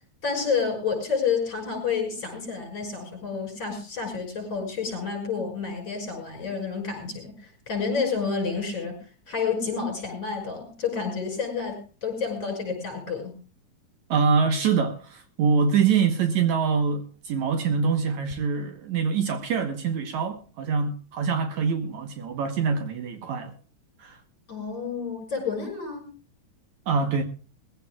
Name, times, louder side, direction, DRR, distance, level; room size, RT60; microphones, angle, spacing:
voice 1, 0.2-7.3 7.7-9.0 9.3-13.3 24.5-26.1, left 5 dB, 35° left, 6.2 m, -29 dB
voice 2, 14.1-23.5 24.0-24.2 26.9-27.2, right 5 dB, 65° right, 2.4 m, -24 dB
21.5 x 15.5 x 2.3 m
omnidirectional pair, 3.7 m